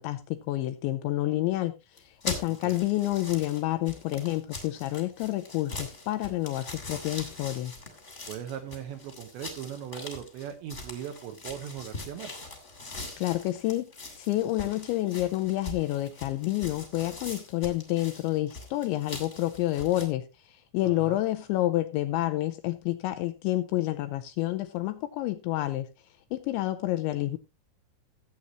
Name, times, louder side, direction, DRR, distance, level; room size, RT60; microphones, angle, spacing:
voice 1, 0.0-7.7 13.2-13.9 14.2-25.9 26.3-27.4, left 16 dB, 80° left, 2.7 m, -29 dB
sound 1, 2.0-20.0, left 2 dB, 25° left, 1.6 m, -42 dB
voice 2, 2.5-2.8 8.3-12.6 20.8-21.2, right 9 dB, 75° right, 3.0 m, -39 dB
16.5 x 8.4 x 3.0 m
omnidirectional pair, 5.8 m